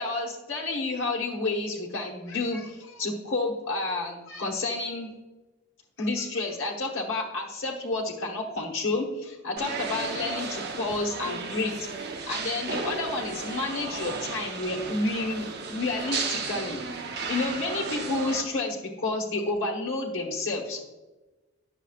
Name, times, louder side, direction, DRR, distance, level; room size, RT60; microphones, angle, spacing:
voice 1, 0.0-5.1 6.0-11.9 12.3-16.8 17.3-20.8, left 2 dB, 65° left, -2 dB, 1.2 m, -30 dB
sound 1, 9.6-18.4, right 4 dB, 55° right, 0.8 m, -34 dB
10.5 x 6.8 x 2.4 m, 1.1 s
head